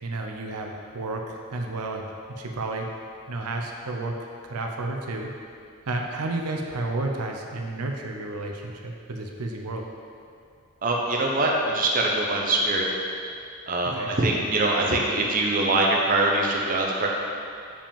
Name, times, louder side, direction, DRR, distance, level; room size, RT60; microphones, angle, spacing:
voice 1, 0.0-2.9 3.3-4.2 4.4-5.3 5.9-9.8 13.9-14.1, right 2 dB, 85° right, 1 dB, 0.6 m, -31 dB
voice 2, 10.8-12.9 13.7-17.1, right 2 dB, 40° right, -1 dB, 0.6 m, -23 dB
7.0 x 5.0 x 3.6 m, 2.4 s
head